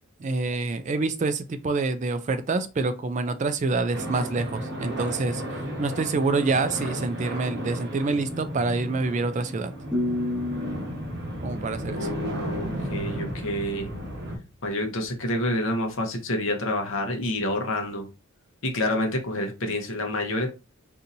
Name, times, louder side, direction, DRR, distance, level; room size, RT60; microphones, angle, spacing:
voice 1, 0.2-5.4 5.8-9.7 11.4-12.1, right 3 dB, 35° right, 9 dB, 0.3 m, -26 dB
sound 1, 3.9-14.4, equal, 50° right, 1.1 m, -34 dB
sound 2, 9.9-12.9, left 1 dB, 5° right, 1.5 m, -32 dB
voice 2, 11.9-13.9 14.6-18.1 18.6-20.5, left 1 dB, 60° left, 4 dB, 0.9 m, -28 dB
4.1 x 2.7 x 2.6 m, 0.30 s
head